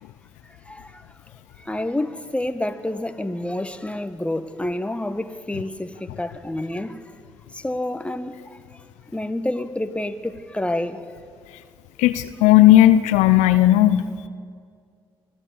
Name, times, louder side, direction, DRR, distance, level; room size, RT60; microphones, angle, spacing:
voice 1, 0.5-1.1 1.6-7.0 7.5-8.6 9.1-11.0, left 1 dB, 10° left, 1.6 m, -28 dB
voice 2, 12.0-14.3, left 14 dB, 80° left, 0.7 m, -15 dB
24.5 x 15.5 x 8.3 m
hypercardioid pair, 45°, 12 cm